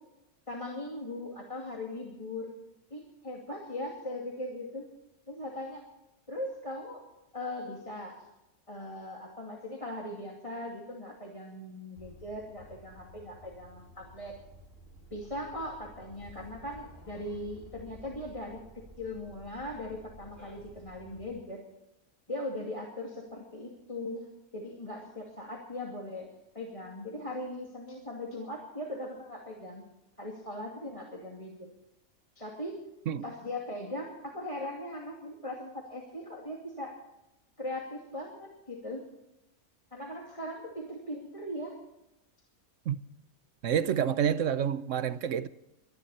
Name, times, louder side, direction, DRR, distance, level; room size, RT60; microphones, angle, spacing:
voice 1, 0.5-2.5 2.9-4.9 5.3-5.8 6.3-7.0 7.3-8.2 8.7-14.3 15.1-18.6 19.0-21.6 22.3-24.3 24.5-29.8 30.2-31.7 32.4-32.8 33.2-36.9 37.6-39.0 39.9-41.8, left 1 dB, 20° left, 2.5 m, -39 dB
sound 1, 12.0-21.3, right 1 dB, 40° left, 5.3 m, -53 dB
voice 2, 43.6-45.5, right 8 dB, 65° right, 1.1 m, -28 dB
24.0 x 11.0 x 4.3 m
omnidirectional pair, 1.5 m